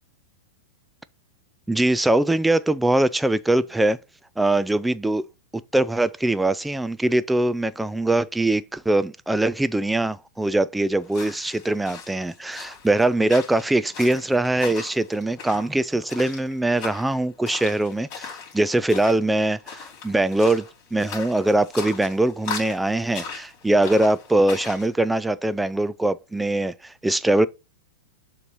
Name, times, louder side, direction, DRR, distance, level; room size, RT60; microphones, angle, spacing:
voice 1, 1.7-4.0 4.4-5.2 5.7-27.5, right 2 dB, 5° right, 0.4 m, -22 dB
sound 1, 11.0-24.9, left 6 dB, 45° left, 2.8 m, -39 dB
6.9 x 3.1 x 5.4 m
hypercardioid pair, 135°, 0 cm